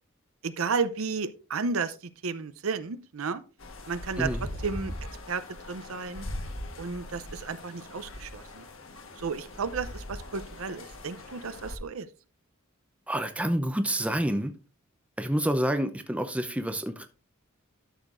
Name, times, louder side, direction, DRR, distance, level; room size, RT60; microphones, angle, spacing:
voice 1, 0.4-1.9 2.2-3.4 3.9-4.3 4.6-4.9 5.3-5.4 5.7-6.3 6.8-8.6 9.2-12.1, right 5 dB, 80° right, 0.6 m, -32 dB
sound 1, 3.6-11.8, left 1 dB, 65° left, 1.4 m, -40 dB
voice 2, 4.2-4.5 13.1-14.5 15.2-17.1, right 1 dB, 5° right, 0.7 m, -28 dB
12.0 x 6.5 x 2.6 m
head